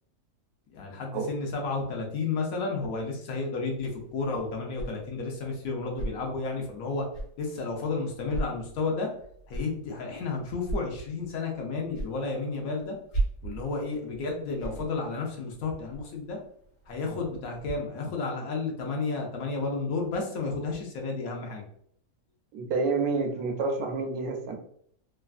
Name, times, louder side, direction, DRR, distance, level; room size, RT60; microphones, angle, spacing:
voice 1, 0.7-7.0 7.4-9.1 9.5-12.9 13.4-16.4 16.9-21.6, left 3 dB, 70° left, 1 dB, 1.1 m, -32 dB
sound 1, 3.7-17.7, right 2 dB, 45° left, 1.4 m, -39 dB
voice 2, 22.5-24.6, right 4 dB, 75° right, 4 dB, 1.1 m, -28 dB
3.2 x 2.4 x 2.3 m, 0.65 s
omnidirectional pair, 1.6 m